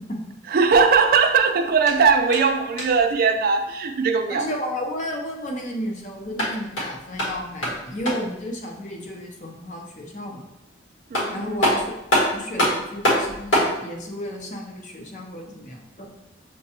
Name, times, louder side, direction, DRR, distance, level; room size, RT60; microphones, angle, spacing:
voice 1, 0.5-4.5 11.1-11.5, right 5 dB, 50° right, 6 dB, 0.3 m, -19 dB
sound 1, 1.7-3.1 6.1-8.4 10.7-10.8 11.1-13.8, equal, 85° left, 1.4 m, -24 dB
voice 2, 4.3-10.4 11.3-11.9 12.3-16.1, equal, 40° left, 1 dB, 0.7 m, -32 dB
6.5 x 2.3 x 2.8 m, 0.88 s
head